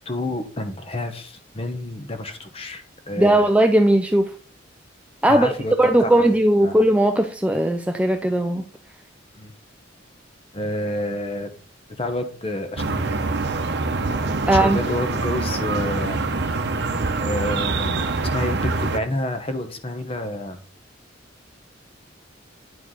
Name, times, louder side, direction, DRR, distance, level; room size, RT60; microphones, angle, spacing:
voice 1, 0.1-3.5 5.3-5.7 6.0-6.3 6.6-6.7 9.3-9.5 10.5-11.5 11.9-13.2 14.5-16.3 17.2-18.1 18.3-20.6, left 1 dB, 30° left, 7 dB, 0.9 m, -29 dB
voice 2, 3.2-4.3 5.2-8.6 14.5-14.8, right 1 dB, 5° right, 5 dB, 0.4 m, -18 dB
sound 1, 12.8-19.0, right 3 dB, 60° right, 0.8 m, -24 dB
9.6 x 4.6 x 3.8 m, 0.42 s
head